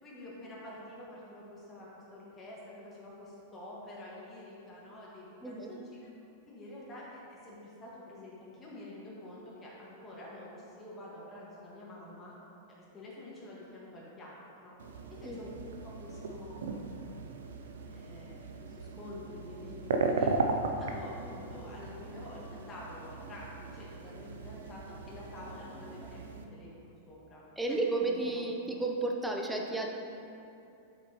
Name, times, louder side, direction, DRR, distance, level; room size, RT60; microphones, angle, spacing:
voice 1, 0.0-5.8 6.5-12.4 12.8-14.8 15.1-15.5 15.8-16.9 17.9-20.3 20.7-27.4 27.7-27.8 28.1-28.4, left 1 dB, 25° left, -6 dB, 1.6 m, -48 dB
sound 1, 14.8-26.4, right 3 dB, 70° right, 0.5 m, -37 dB
voice 2, 15.2-15.5 27.6-29.9, right 2 dB, 5° right, 1 dB, 0.7 m, -32 dB
7.5 x 5.9 x 3.0 m, 2.7 s
figure-of-eight pair, 95°, 0 cm